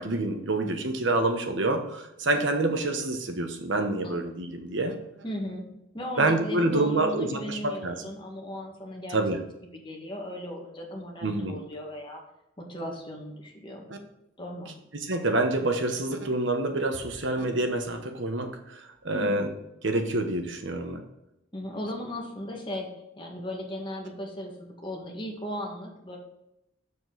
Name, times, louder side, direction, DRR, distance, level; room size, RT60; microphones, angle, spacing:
voice 1, 0.0-5.0 6.2-8.1 9.1-9.4 11.2-11.6 13.9-14.0 14.9-19.5 19.8-21.0, right 2 dB, 65° right, 6 dB, 1.1 m, -27 dB
voice 2, 5.2-9.2 9.8-12.2 12.6-13.9 14.4-14.9 19.1-19.5 21.5-22.9 23.1-26.2, left 1 dB, 25° left, 0 dB, 1.7 m, -37 dB
7.0 x 6.9 x 4.0 m, 0.86 s
head